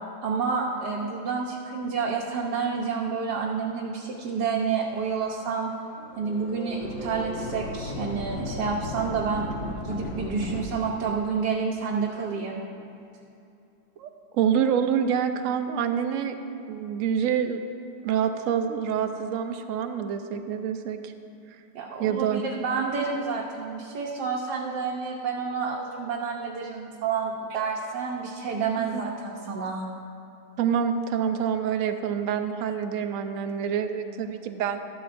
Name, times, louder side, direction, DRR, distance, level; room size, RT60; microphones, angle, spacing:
voice 1, 0.2-5.7 6.2-12.6 21.7-29.8, right 5 dB, 85° right, -2 dB, 1.4 m, -29 dB
sound 1, 3.5-3.6 4.4-4.5 4.7-5.3 5.9-10.7, left 2 dB, 50° left, 1.3 m, -35 dB
voice 2, 14.0-16.4 16.7-17.6 18.0-21.1 22.0-22.4 28.8-29.0 30.6-34.8, right 8 dB, 65° right, 7 dB, 0.9 m, -27 dB
13.5 x 12.0 x 2.6 m, 2.6 s
omnidirectional pair, 1.8 m